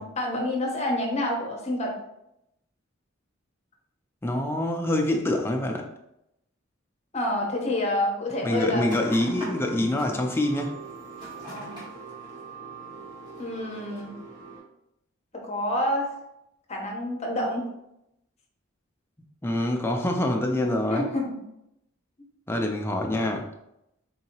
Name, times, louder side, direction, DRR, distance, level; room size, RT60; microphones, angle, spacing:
voice 1, 0.0-2.0 7.1-8.9 11.5-11.8 13.4-14.1 15.3-16.1 16.7-17.7 20.9-21.4, left 1 dB, 35° left, 0 dB, 0.7 m, -28 dB
voice 2, 4.2-5.9 8.4-10.8 19.4-21.1 22.5-23.5, left 1 dB, 10° left, 2 dB, 0.3 m, -25 dB
sound 1, 8.8-14.6, right 2 dB, 25° right, 1.5 m, -41 dB
3.8 x 2.7 x 2.9 m, 0.83 s
head